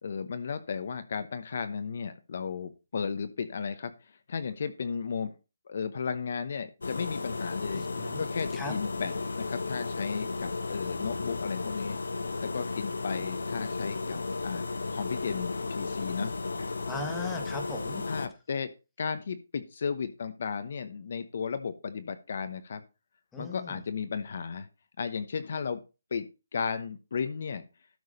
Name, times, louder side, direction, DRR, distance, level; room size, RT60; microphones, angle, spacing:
voice 1, 0.0-5.3 5.7-12.0 12.4-14.6 14.9-16.3 18.0-18.7 19.0-22.8 23.4-24.7 25.0-25.8 26.1-26.3 26.5-27.6, left 6 dB, 50° left, 10 dB, 0.9 m, -34 dB
sound 1, 6.8-18.3, left 3 dB, 90° left, 1.3 m, -34 dB
voice 2, 8.0-8.3 8.5-8.7 16.9-18.0 23.3-23.8, left 2 dB, 5° left, 3 dB, 1.5 m, -38 dB
12.5 x 4.7 x 5.3 m, 0.29 s
hypercardioid pair, 165°, 0 cm